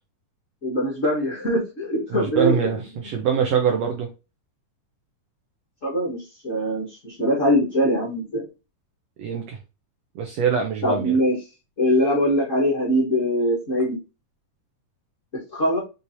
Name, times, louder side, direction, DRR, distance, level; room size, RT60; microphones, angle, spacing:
voice 1, 0.6-2.6 5.8-8.4 10.8-11.4 11.8-14.0 15.3-15.8, equal, 50° left, -5 dB, 0.9 m, -22 dB
voice 2, 2.1-4.1 9.2-9.6 10.2-11.2, right 7 dB, 75° right, 3 dB, 1.5 m, -24 dB
6.3 x 2.8 x 2.7 m, 0.28 s
omnidirectional pair, 3.9 m